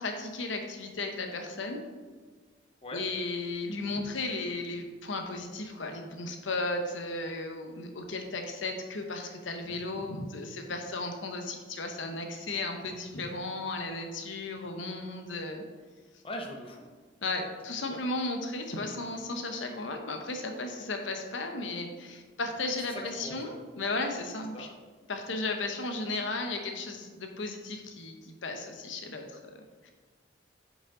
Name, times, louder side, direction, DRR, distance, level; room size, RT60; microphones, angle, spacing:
voice 1, 0.0-1.8 2.9-15.6 17.2-24.7 25.1-29.4 29.8-29.9, left 2 dB, 85° left, 4 dB, 0.9 m, -35 dB
voice 2, 16.2-16.9 17.8-18.0 22.9-23.5 24.5-24.7, equal, 30° left, 2 dB, 0.8 m, -40 dB
8.4 x 5.3 x 3.8 m, 1.4 s
head